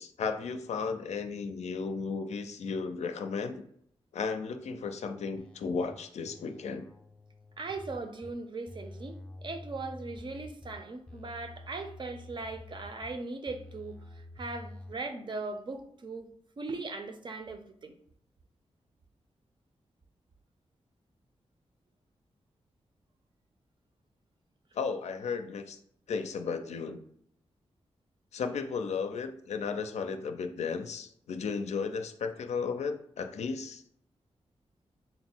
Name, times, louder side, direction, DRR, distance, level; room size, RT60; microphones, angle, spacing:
voice 1, 0.0-3.6 4.1-6.9 24.7-25.8 26.1-27.0 28.3-33.8, left 5 dB, 80° left, 0.4 m, -34 dB
sound 1, 5.4-5.9 6.3-8.3 8.7-10.8 11.1-13.1 13.5-14.9, left 1 dB, 10° left, 0.4 m, -48 dB
voice 2, 7.6-16.3 16.6-17.9, right 3 dB, 45° right, 0.5 m, -39 dB
3.8 x 2.0 x 4.3 m
wide cardioid pair, 85°, 11 cm